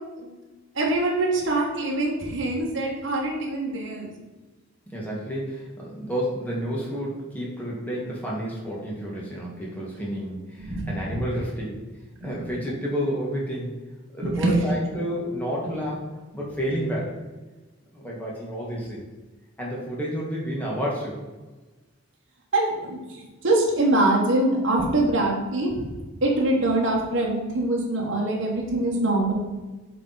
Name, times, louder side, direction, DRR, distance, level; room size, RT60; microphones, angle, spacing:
voice 1, 0.7-4.1 10.6-11.2 12.2-12.5 14.2-14.6 22.5-25.9 26.2-29.3, right 2 dB, 60° right, -3 dB, 1.3 m, -24 dB
voice 2, 4.9-11.8 12.2-13.7 14.1-16.0 16.3-17.2 17.9-19.0 19.6-21.3, equal, 5° left, -5 dB, 1.6 m, -30 dB
8.3 x 3.5 x 4.0 m, 1.2 s
head